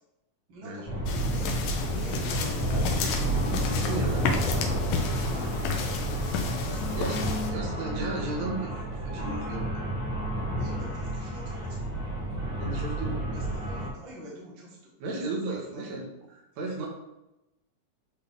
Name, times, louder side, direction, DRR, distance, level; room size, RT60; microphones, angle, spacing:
voice 1, 0.5-1.6 1.9-3.4 3.7-4.4 5.2-8.0 10.5-11.9 13.3-16.0, equal, 40° right, -4 dB, 2.2 m, -45 dB
sound 1, 0.8-13.9, right 1 dB, 20° right, 0.7 m, -30 dB
sound 2, 1.1-7.5, left 5 dB, 85° left, 2.5 m, -32 dB
voice 2, 3.8-4.2 7.0-7.2 7.5-8.8 9.0-9.7 12.6-13.2 15.0-16.9, right 2 dB, 85° right, -1 dB, 3.2 m, -34 dB
10.0 x 3.5 x 3.6 m, 0.92 s
omnidirectional pair, 3.9 m